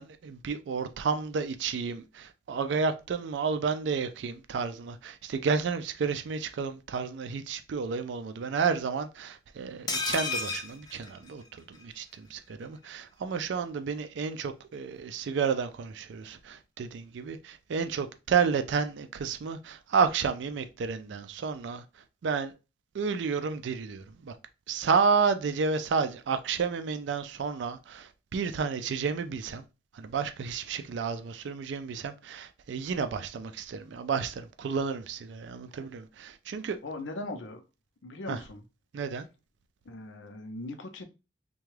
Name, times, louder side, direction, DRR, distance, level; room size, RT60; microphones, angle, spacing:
voice 1, 0.0-21.8 22.2-22.5 22.9-24.3 24.7-29.6 29.9-36.8 38.3-38.4 38.9-39.3, right 5 dB, 75° right, 0.4 m, -31 dB
sound 1, 9.9-11.8 12.1-12.2 12.5-12.6, left 3 dB, 20° left, 0.5 m, -33 dB
voice 2, 36.8-37.6 38.0-38.6 39.8-41.0, left 2 dB, 85° left, 0.6 m, -39 dB
3.4 x 2.2 x 3.2 m
head